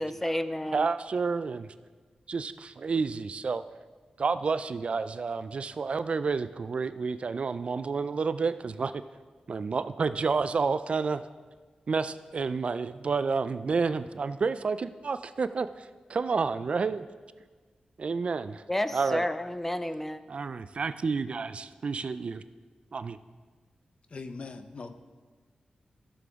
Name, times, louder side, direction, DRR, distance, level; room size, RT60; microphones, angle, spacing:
voice 1, 0.0-0.9 18.7-20.2, left 1 dB, 10° left, 12 dB, 0.4 m, -31 dB
voice 2, 0.7-1.7 2.3-3.6 4.2-9.0 9.5-11.2 11.9-17.1 18.0-18.6 18.9-19.3 20.3-22.4 22.9-23.2, right 4 dB, 50° right, 12 dB, 0.3 m, -30 dB
voice 3, 24.1-24.9, left 4 dB, 50° left, 10 dB, 0.6 m, -40 dB
14.5 x 6.9 x 3.6 m, 1.4 s
wide cardioid pair, 100°, 2 cm